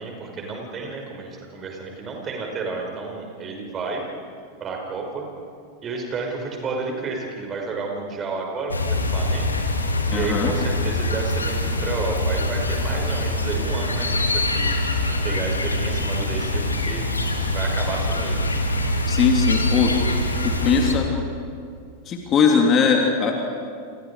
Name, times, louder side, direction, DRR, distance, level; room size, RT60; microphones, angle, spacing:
voice 1, 0.0-4.0 4.6-5.3 5.8-9.6 10.1-14.3 14.5-14.8 15.2-17.1 17.5-18.4, right 4 dB, 25° right, 1 dB, 5.8 m, -31 dB
sound 1, 8.7-20.9, left 1 dB, 80° left, 2.5 m, -24 dB
voice 2, 10.1-10.5 19.1-19.9 20.4-21.1 22.1-23.4, left 6 dB, 30° left, 1 dB, 3.0 m, -20 dB
29.5 x 28.5 x 4.9 m, 2.3 s
figure-of-eight pair, 90°, 0 cm